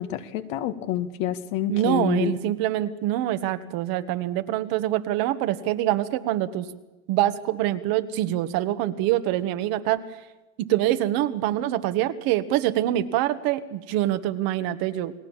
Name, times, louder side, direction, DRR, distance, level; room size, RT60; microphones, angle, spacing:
voice 1, 0.0-2.4, left 12 dB, 65° left, 8 dB, 2.0 m, -28 dB
voice 2, 1.7-6.7 7.1-10.0 10.6-15.1, right 13 dB, 60° right, 10 dB, 1.7 m, -25 dB
29.0 x 18.5 x 7.5 m, 1.1 s
supercardioid pair, 105°, 40 cm